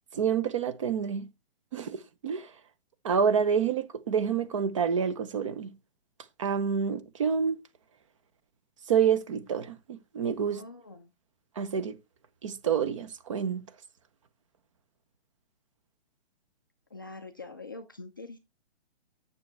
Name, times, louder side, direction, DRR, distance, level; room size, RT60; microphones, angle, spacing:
voice 1, 0.1-1.3 1.7-2.0 2.2-2.5 3.0-5.7 6.4-7.6 8.9-10.6 11.6-12.0 12.4-13.6, right 7 dB, 35° right, 0.7 m, -28 dB
voice 2, 10.5-11.1 16.9-18.4, left 3 dB, 25° left, 0.4 m, -44 dB
9.5 x 6.8 x 3.3 m
hypercardioid pair, 170°, 30 cm